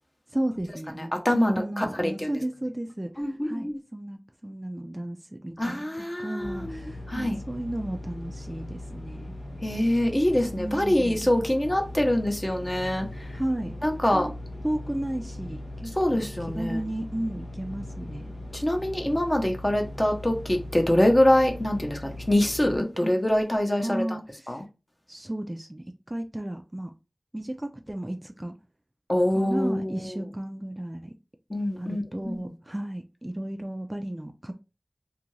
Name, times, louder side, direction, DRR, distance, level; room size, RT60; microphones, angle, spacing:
voice 1, 0.3-9.3 10.6-11.3 13.3-13.8 14.1-14.3 14.6-16.3 16.5-18.3 23.0-23.1 23.8-24.6 25.1-26.9 27.3-28.5 29.3-31.1 31.8-34.6, right 1 dB, 20° right, 0.3 m, -34 dB
voice 2, 1.0-2.3 3.2-3.8 5.6-7.4 9.6-13.1 13.8-14.3 16.0-16.8 18.5-24.0 24.5-24.6 29.1-30.1 31.5-32.4, left 1 dB, 25° left, 0.7 m, -25 dB
sound 1, 6.4-22.8, left 1 dB, 80° left, 0.7 m, -39 dB
2.6 x 2.5 x 3.1 m
wide cardioid pair, 60°, 0 cm